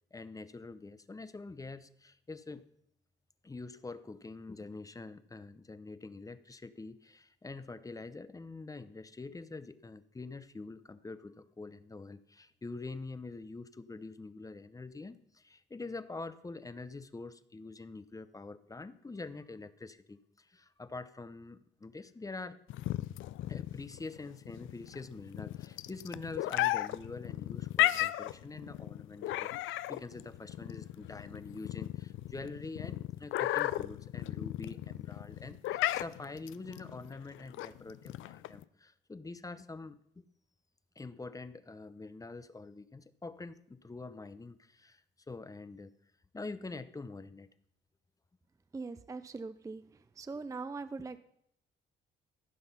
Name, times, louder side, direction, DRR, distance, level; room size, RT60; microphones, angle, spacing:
voice 1, 0.1-2.6 3.4-22.6 23.5-40.3 41.0-45.0 45.3-45.9 46.3-47.5 50.3-50.4, left 3 dB, 15° left, 14 dB, 0.7 m, -45 dB
sound 1, 22.7-38.6, left 15 dB, 80° left, 0.4 m, -35 dB
voice 2, 48.7-49.8 50.2-51.2, right 4 dB, 15° right, 13 dB, 0.4 m, -41 dB
15.0 x 5.9 x 5.6 m, 0.73 s
cardioid pair, 90°, 20 cm